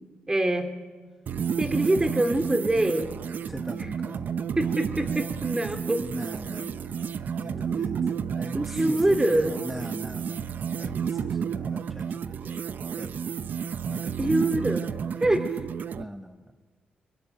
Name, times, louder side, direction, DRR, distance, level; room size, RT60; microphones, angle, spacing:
voice 1, 0.3-0.8 1.6-3.1 4.6-6.0 8.5-9.6 14.2-14.9 15.2-15.6, right 1 dB, 20° right, 8 dB, 2.4 m, -25 dB
sound 1, 1.3-16.0, right 7 dB, 60° right, 0.8 m, -31 dB
voice 2, 3.4-4.3 6.0-13.4 13.9-14.5 15.9-16.5, equal, 5° right, 7 dB, 1.1 m, -41 dB
25.0 x 22.5 x 9.1 m, 1.4 s
cardioid pair, 85°, 3 cm